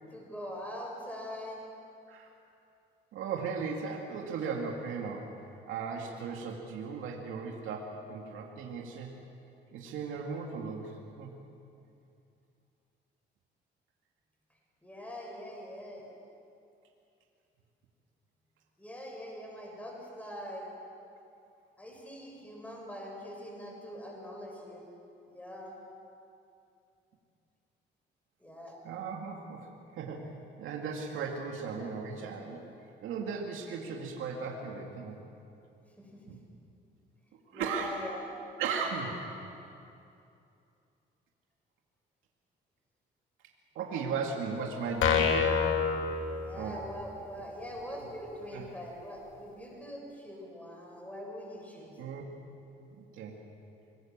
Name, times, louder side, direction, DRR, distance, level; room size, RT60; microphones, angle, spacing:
voice 1, 0.1-1.6 14.8-16.1 18.8-20.7 21.8-24.8 25.3-25.7 28.4-28.8 36.0-36.2 37.5-38.3 43.9-44.1 46.3-52.0, equal, 5° left, -1 dB, 7.3 m, -43 dB
voice 2, 3.1-5.3 5.7-9.1 9.7-11.3 28.8-29.7 29.9-32.7 33.0-35.2 36.3-36.4 37.5-38.1 38.6-39.6 43.7-45.7 46.5-46.8 48.5-48.6 52.0-52.2 53.1-53.3, right 5 dB, 85° right, 0 dB, 2.5 m, -37 dB
sound 1, 45.0-46.9, left 6 dB, 80° left, 2.5 m, -27 dB
25.5 x 21.0 x 7.5 m, 2.6 s
cardioid pair, 90°, 20 cm